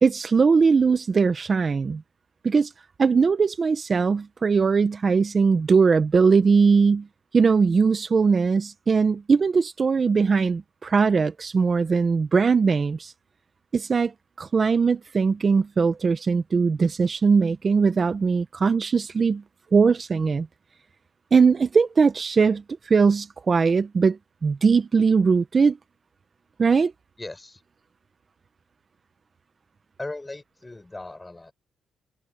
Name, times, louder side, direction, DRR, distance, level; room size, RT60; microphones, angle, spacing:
voice 1, 0.0-2.0 2.4-2.7 3.0-7.1 7.3-13.1 13.7-14.1 14.4-19.4 19.7-20.5 21.3-25.8 26.6-26.9, right 5 dB, 35° right, 1.0 m, -20 dB
voice 2, 27.2-27.6 30.0-31.5, left 2 dB, 15° left, 4.7 m, -38 dB
cardioid pair, 90°, 0 cm